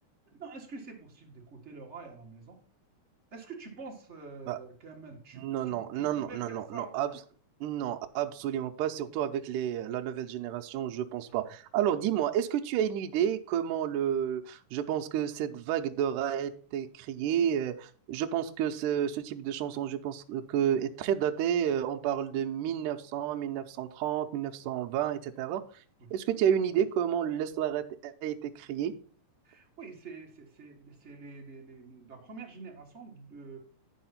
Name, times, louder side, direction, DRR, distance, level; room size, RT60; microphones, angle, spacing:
voice 1, 0.3-2.6 3.3-6.9 11.3-11.4 29.4-33.6, right 4 dB, 40° right, 0 dB, 0.9 m, -46 dB
voice 2, 5.3-7.1 7.6-25.6 26.1-28.9, right 9 dB, 75° right, 5 dB, 2.1 m, -30 dB
10.0 x 4.8 x 5.7 m, 0.43 s
omnidirectional pair, 3.9 m